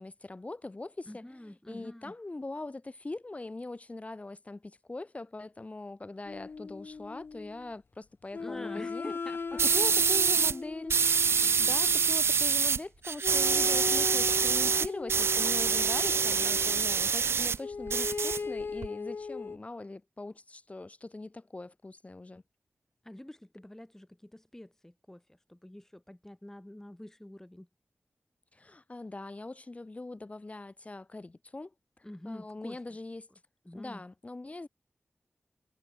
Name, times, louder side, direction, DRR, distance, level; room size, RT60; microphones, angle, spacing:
voice 1, 0.0-9.2 9.7-11.0 11.3-22.4 28.5-31.7 32.2-33.3 33.7-34.7, left 2 dB, 30° left, 1.4 m, -41 dB
voice 2, 1.1-2.1 8.4-9.7 10.1-10.5 11.4-11.8 23.0-27.7 32.0-32.8 33.7-34.0, left 1 dB, 10° left, 1.0 m, -47 dB
sound 1, 6.2-7.7 8.3-12.2 13.2-16.9 17.6-19.6, left 4 dB, 60° left, 0.5 m, -38 dB
sound 2, 9.6-10.5 10.9-12.8 13.0-17.6 17.9-18.9, right 6 dB, 75° right, 0.4 m, -26 dB
wide cardioid pair, 80°, 4 cm